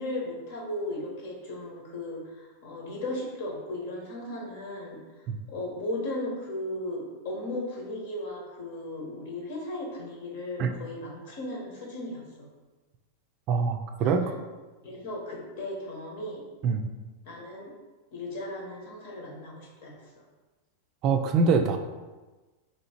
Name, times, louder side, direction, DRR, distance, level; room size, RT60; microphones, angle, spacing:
voice 1, 0.0-5.0 5.5-12.2 14.0-14.3 14.8-16.4 17.2-17.7 18.1-20.1, left 1 dB, 65° left, -1 dB, 1.2 m, -36 dB
voice 2, 13.5-14.3 16.6-16.9 21.0-21.8, right 5 dB, 40° right, 6 dB, 0.3 m, -24 dB
3.0 x 2.7 x 4.3 m, 1.2 s
supercardioid pair, 140°, 0 cm